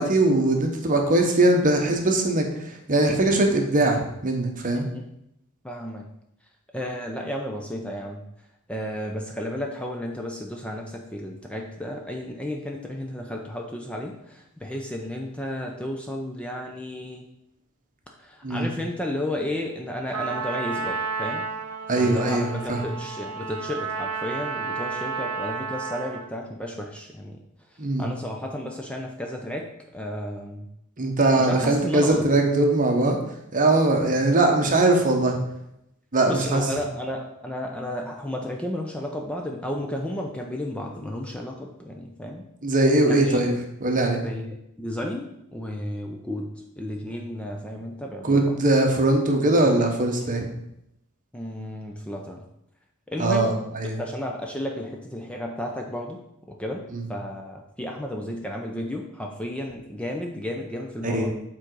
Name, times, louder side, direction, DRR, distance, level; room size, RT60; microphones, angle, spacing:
voice 1, 0.0-2.4 2.9-4.9 18.4-18.7 21.9-22.8 27.8-28.1 31.0-33.2 33.5-35.4 36.1-36.6 42.6-43.5 43.8-44.2 48.2-50.4 53.2-54.0 56.9-57.0 61.0-61.3, right 2 dB, 35° right, 3 dB, 1.0 m, -21 dB
voice 2, 4.7-5.0 5.6-6.0 6.7-8.2 8.7-17.2 18.2-21.4 22.0-27.4 28.0-30.7 31.4-32.3 36.3-42.4 43.1-43.4 44.2-46.5 46.8-48.6 50.2-50.3 51.3-52.4 53.1-53.6 54.0-56.2 56.5-56.8 57.1-61.3, left 1 dB, 5° left, 1 dB, 0.5 m, -33 dB
Trumpet, 20.1-26.4, right 5 dB, 80° right, 0.8 m, -32 dB
7.2 x 3.8 x 4.6 m, 0.81 s
head